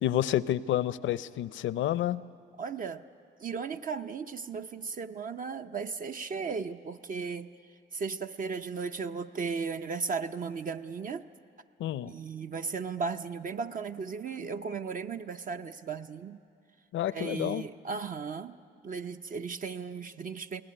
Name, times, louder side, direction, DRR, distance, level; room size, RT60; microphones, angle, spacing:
voice 1, 0.0-2.2 11.8-12.1 16.9-17.6, left 12 dB, 75° left, 17 dB, 0.6 m, -29 dB
voice 2, 2.6-3.0 3.4-7.5 7.9-11.2 12.1-16.4 17.1-18.5 18.8-20.6, right 5 dB, 45° right, 8 dB, 0.6 m, -36 dB
21.5 x 17.0 x 9.9 m, 2.4 s
cardioid pair, 90°, 20 cm